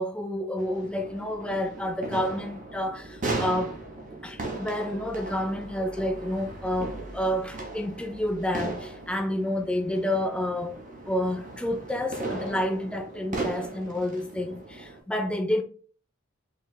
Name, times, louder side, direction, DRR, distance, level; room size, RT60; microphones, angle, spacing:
voice 1, 0.0-3.7 4.2-10.8 11.1-15.6, left 1 dB, 5° left, 0.4 m, -29 dB
sound 1, 0.6-15.0, right 2 dB, 35° right, 1.3 m, -37 dB
5.6 x 3.3 x 2.2 m
head